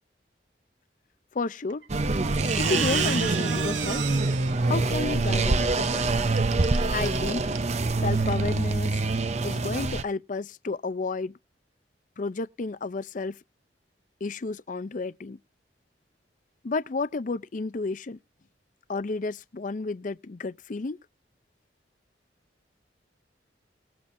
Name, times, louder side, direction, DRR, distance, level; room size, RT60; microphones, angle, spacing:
voice 1, 1.3-1.8 2.6-4.1 4.7-6.3 6.9-7.4 8.0-8.9 9.4-11.3 12.2-13.4 14.2-15.4 16.6-18.2 18.9-21.0, left 3 dB, 45° left, 0.5 m, -31 dB
Squeak, 1.7-2.0 2.3-7.2 7.5-7.7 8.1-8.2, right 8 dB, 85° right, 1.1 m, -36 dB
sound 1, 1.9-10.0, right 3 dB, 40° right, 0.7 m, -25 dB
20.0 x 7.6 x 2.6 m
head